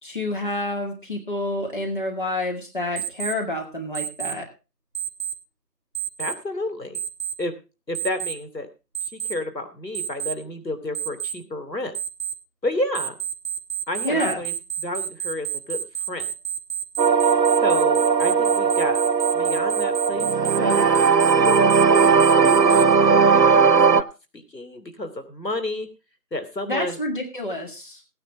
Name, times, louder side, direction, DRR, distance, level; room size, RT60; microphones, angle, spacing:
voice 1, 0.0-4.4 14.0-14.4 26.7-28.0, left 1 dB, 30° left, 1 dB, 2.1 m, -28 dB
Alarm, 3.0-3.3 3.9-4.3 4.9-5.3 5.9-6.3 6.9-7.3 7.9-8.3 8.9-9.3 9.9-10.3 10.9-11.3 11.9-12.3 12.9-22.8, right 9 dB, 35° right, 1.2 m, -29 dB
voice 2, 6.2-7.0 7.4-7.5 7.9-8.7 9.0-11.9 12.6-13.2 13.9-16.3 17.6-19.0 19.3-20.9 21.3-24.0 24.3-25.9 26.3-27.0, left 1 dB, 80° left, 8 dB, 2.9 m, -30 dB
sound 1, 17.0-24.0, right 5 dB, 80° right, 0.9 m, -18 dB
17.0 x 9.7 x 3.5 m, 0.30 s
figure-of-eight pair, 170°, 49 cm